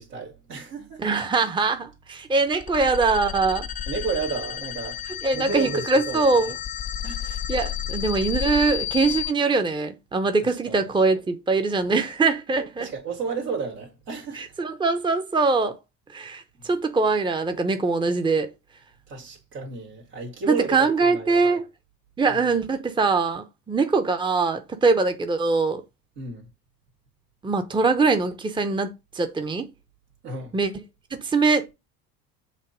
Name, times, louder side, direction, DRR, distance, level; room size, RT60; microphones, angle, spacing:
voice 1, 0.0-1.0 3.9-5.0 5.3-6.5 7.0-7.2 10.5-10.8 12.8-14.5 16.6-16.7 19.1-21.6 26.2-26.5 30.2-30.5, right 4 dB, 80° right, 2.2 m, -32 dB
voice 2, 1.0-3.7 5.1-6.5 7.2-12.9 14.3-15.8 16.1-18.5 20.4-21.6 22.2-25.8 27.4-29.7 30.5-30.7 31.1-31.7, right 4 dB, 10° right, 0.9 m, -23 dB
sound 1, 2.5-9.3, left 11 dB, 20° left, 0.4 m, -31 dB
7.6 x 2.9 x 5.1 m
figure-of-eight pair, 65°, 47 cm